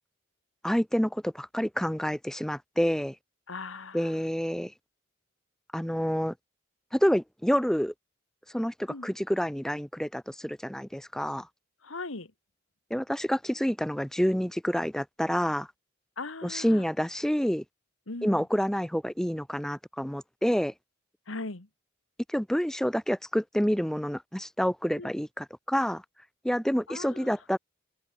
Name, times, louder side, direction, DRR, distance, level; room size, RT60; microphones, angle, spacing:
voice 1, 0.6-3.1 3.9-4.7 5.7-6.3 6.9-7.9 8.5-11.5 12.9-15.7 16.4-17.6 18.2-20.7 22.3-26.0 26.4-27.6, equal, 5° left, 0.7 m, -28 dB
voice 2, 3.5-4.2 8.9-9.1 11.8-12.3 16.2-16.9 18.1-18.5 21.3-21.7 25.0-25.1 26.9-27.4, left 3 dB, 80° left, 2.0 m, -39 dB
open air
head